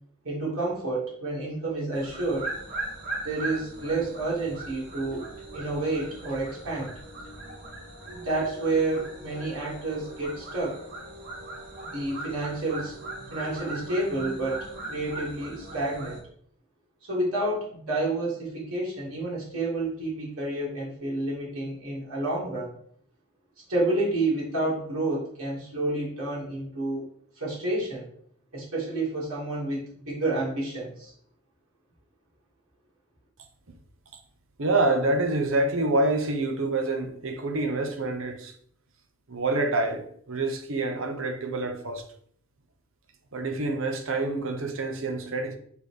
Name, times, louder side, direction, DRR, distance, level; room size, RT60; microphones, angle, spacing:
voice 1, 0.2-2.5 3.2-5.2 5.5-6.9 8.1-10.8 11.8-12.9 13.3-16.2 17.0-22.7 23.7-27.1 27.4-28.1 28.5-29.8 30.1-31.1, right 2 dB, 90° right, 2.8 m, -29 dB
sound 1, 1.9-16.2, right 2 dB, 35° right, 2.6 m, -39 dB
voice 2, 34.6-38.5 39.3-42.0 43.3-45.6, right 2 dB, 65° right, 0.9 m, -27 dB
5.0 x 4.3 x 5.0 m
head